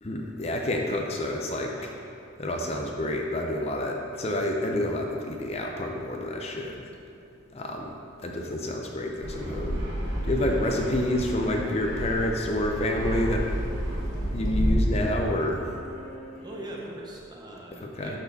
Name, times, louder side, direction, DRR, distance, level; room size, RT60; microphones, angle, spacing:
voice 1, 0.0-1.8 2.4-6.9 7.5-9.8 10.2-13.5 14.3-15.7 17.7-18.2, left 1 dB, 30° left, 1 dB, 0.5 m, -28 dB
sound 1, 6.2-16.9, equal, 70° left, 1.9 m, -49 dB
Fixed-wing aircraft airplane, 9.2-14.7, equal, 70° right, 2.0 m, -31 dB
voice 2, 16.4-18.2, right 1 dB, 20° right, -2 dB, 0.9 m, -41 dB
12.0 x 4.4 x 4.1 m, 2.6 s
head